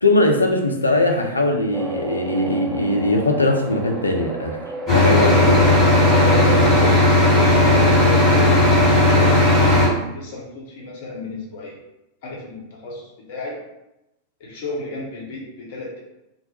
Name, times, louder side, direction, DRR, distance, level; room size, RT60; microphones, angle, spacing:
voice 1, 0.0-4.6 4.9-5.8, left 2 dB, 80° left, 2 dB, 0.3 m, -20 dB
sound 1, 1.7-6.9, right 3 dB, 20° right, 0.4 m, -30 dB
sound 2, 4.9-9.9, left 1 dB, 15° left, 1.0 m, -15 dB
voice 2, 6.8-9.8 10.1-11.8 12.2-13.6 14.4-16.0, left 2 dB, 50° left, -3 dB, 0.7 m, -33 dB
2.1 x 2.0 x 2.9 m, 0.91 s
figure-of-eight pair, 90°, 0 cm